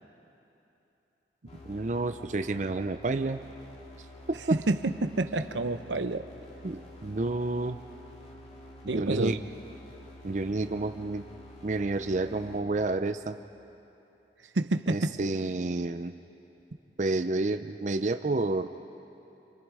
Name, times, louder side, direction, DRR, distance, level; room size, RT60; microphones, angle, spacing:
sound 1, 1.5-13.4, left 1 dB, 35° left, 2.6 m, -49 dB
voice 1, 1.6-3.4 4.3-4.6 6.6-7.8 8.8-9.4 10.2-11.2 11.6-13.4 14.9-16.1 17.0-18.7, right 2 dB, 40° right, 8 dB, 0.5 m, -30 dB
voice 2, 4.5-6.2 8.9-9.4 14.5-15.2, right 2 dB, 85° right, 10 dB, 0.8 m, -28 dB
29.0 x 27.0 x 4.8 m, 3.0 s
head